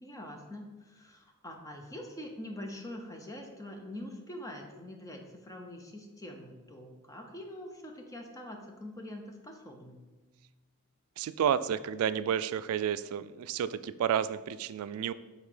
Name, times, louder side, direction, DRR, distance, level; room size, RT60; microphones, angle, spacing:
voice 1, 0.0-10.0, left 1 dB, 15° left, 3 dB, 0.6 m, -44 dB
voice 2, 11.2-15.1, right 8 dB, 80° right, 16 dB, 0.3 m, -31 dB
5.4 x 3.8 x 4.9 m, 1.2 s
head